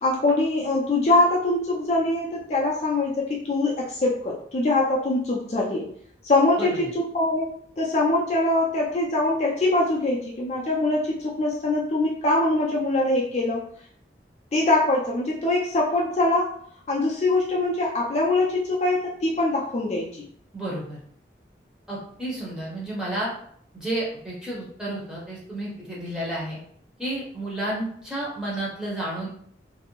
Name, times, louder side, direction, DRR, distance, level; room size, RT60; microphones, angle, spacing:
voice 1, 0.0-5.9 6.2-7.5 7.8-13.6 14.5-16.5 16.9-20.2, left 2 dB, 35° left, -4 dB, 0.4 m, -23 dB
voice 2, 6.6-6.9 20.5-21.0 21.9-23.3 23.7-26.6 27.0-29.3, right 1 dB, 5° right, -7 dB, 0.7 m, -31 dB
2.5 x 2.0 x 2.9 m, 0.63 s
head